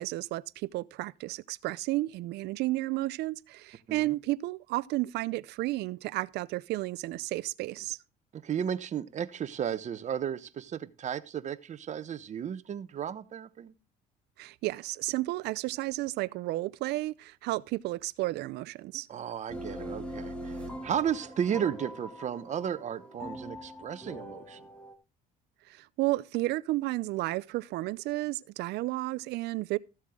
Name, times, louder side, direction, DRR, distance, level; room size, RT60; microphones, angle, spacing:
voice 1, 0.0-8.0 14.4-19.1 25.7-29.8, right 18 dB, 80° right, 0.5 m, -32 dB
voice 2, 8.3-13.7 19.1-24.6, right 8 dB, 45° right, 1.0 m, -34 dB
sound 1, 19.5-24.9, equal, 5° left, 2.2 m, -42 dB
14.5 x 7.4 x 3.7 m
cardioid pair, 110°, 17 cm